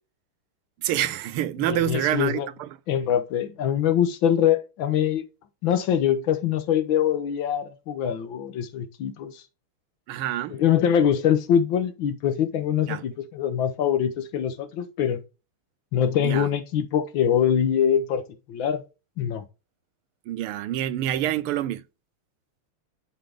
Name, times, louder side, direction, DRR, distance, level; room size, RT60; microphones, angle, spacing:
voice 1, 0.8-2.8 10.1-10.6 12.9-13.0 16.2-16.5 20.3-21.8, right 12 dB, 90° right, 1.5 m, -27 dB
voice 2, 1.7-2.5 2.9-5.2 5.6-9.4 10.5-15.2 15.9-18.8 19.2-19.4, left 9 dB, 70° left, 1.5 m, -23 dB
11.0 x 3.7 x 3.4 m
omnidirectional pair, 2.4 m